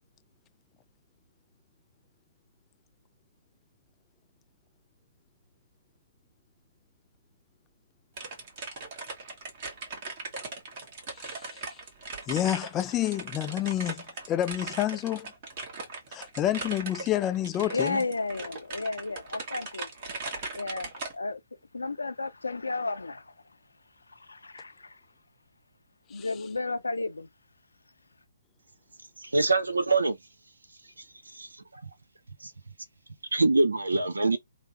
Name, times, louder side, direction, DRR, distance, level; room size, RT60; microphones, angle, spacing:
sound 1, 8.2-21.1, right 3 dB, 40° right, 1.5 m, -39 dB
voice 1, 11.1-11.8 12.3-15.3 16.1-18.0 26.1-26.3, left 12 dB, 20° left, 0.3 m, -29 dB
voice 2, 17.6-21.4 21.7-23.2 24.1-25.0 26.1-27.3, left 3 dB, 80° left, 0.6 m, -33 dB
voice 3, 29.2-30.2 31.3-31.5 32.4-32.5 33.3-34.4, right 3 dB, 80° right, 0.7 m, -24 dB
3.3 x 2.0 x 2.9 m
figure-of-eight pair, 130°, 0 cm